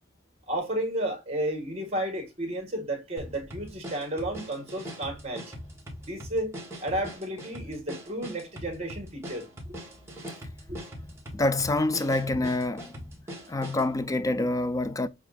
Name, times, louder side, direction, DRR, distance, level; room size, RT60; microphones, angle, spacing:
voice 1, 0.5-5.5 6.0-9.8 10.7-10.8, right 1 dB, 35° right, 1.7 m, -32 dB
sound 1, 3.2-13.9, equal, 15° right, 1.4 m, -42 dB
voice 2, 11.3-13.0 13.5-15.1, left 2 dB, 15° left, 0.4 m, -26 dB
6.9 x 2.5 x 2.4 m
head